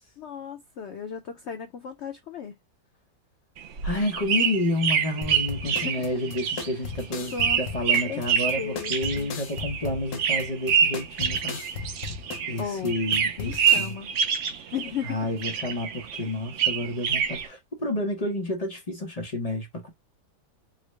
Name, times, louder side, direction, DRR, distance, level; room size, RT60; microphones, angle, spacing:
voice 1, 0.2-2.5 5.6-5.9 7.3-7.6 8.1-8.2 8.6-9.3 12.6-13.0 13.4-14.2 14.7-15.2, left 8 dB, 85° left, 0.6 m, -35 dB
sound 1, 3.6-12.6 12.9-15.1 15.4-17.5, right 7 dB, 80° right, 0.6 m, -26 dB
voice 2, 3.8-11.6 12.5-14.0 15.0-19.9, left 1 dB, 40° left, 0.5 m, -30 dB
sound 2, 5.2-13.9, left 5 dB, 65° left, 1.1 m, -37 dB
3.8 x 2.1 x 3.1 m
omnidirectional pair, 1.8 m